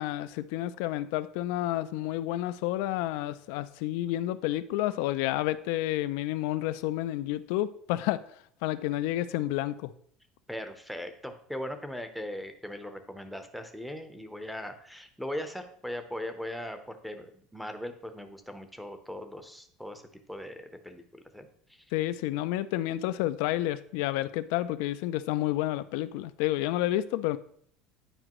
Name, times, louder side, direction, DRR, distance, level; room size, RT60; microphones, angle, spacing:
voice 1, 0.0-8.2 8.6-9.9 21.9-27.4, left 15 dB, 75° left, 14 dB, 0.4 m, -30 dB
voice 2, 10.5-20.0 20.3-21.5, left 1 dB, ahead, 6 dB, 0.7 m, -39 dB
9.8 x 5.0 x 3.0 m, 0.64 s
cardioid pair, 150°, 0 cm